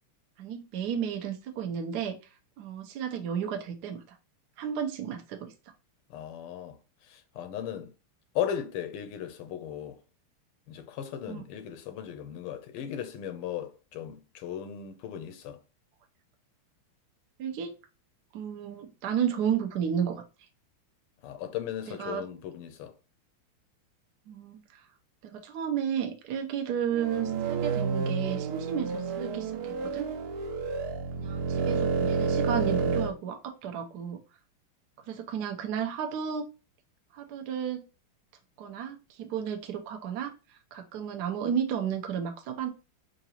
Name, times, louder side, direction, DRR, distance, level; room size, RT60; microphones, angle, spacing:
voice 1, 0.4-2.2 2.6-4.2 4.6-5.5 11.3-11.5 17.4-17.8 18.3-20.2 22.0-22.2 24.3-24.8 25.2-30.1 31.2-34.2 35.1-36.4 37.1-37.8 38.6-42.7, right 8 dB, 70° right, 0.9 m, -33 dB
voice 2, 6.1-7.9 8.3-10.0 10.7-15.6 21.2-22.9, left 9 dB, 85° left, 1.6 m, -37 dB
sound 1, 26.9-33.1, right 4 dB, 85° right, 1.6 m, -30 dB
4.8 x 2.5 x 2.8 m
omnidirectional pair, 2.4 m